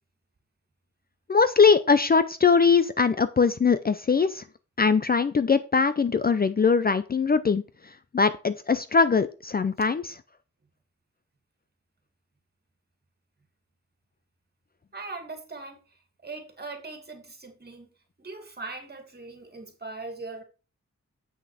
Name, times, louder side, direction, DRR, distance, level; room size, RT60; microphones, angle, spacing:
voice 1, 1.3-4.4 4.8-7.6 8.1-10.2, left 5 dB, 35° left, 0.5 m, -21 dB
voice 2, 14.9-15.8 16.2-17.9 18.2-20.4, right 3 dB, 35° right, 2.4 m, -40 dB
8.0 x 6.2 x 4.8 m
wide cardioid pair, 95°, 29 cm